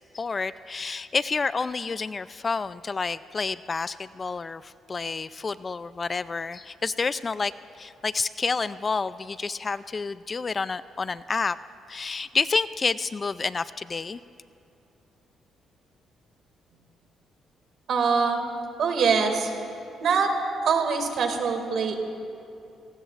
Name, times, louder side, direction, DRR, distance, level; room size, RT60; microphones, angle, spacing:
voice 1, 0.1-7.5 7.8-11.6 11.9-14.2, left 4 dB, 35° left, 16 dB, 0.3 m, -29 dB
voice 2, 17.9-18.4 18.8-19.5 20.0-20.3 20.6-21.9, right 5 dB, 65° right, 4 dB, 2.1 m, -23 dB
27.5 x 19.0 x 2.5 m, 2.6 s
cardioid pair, 90°, 0 cm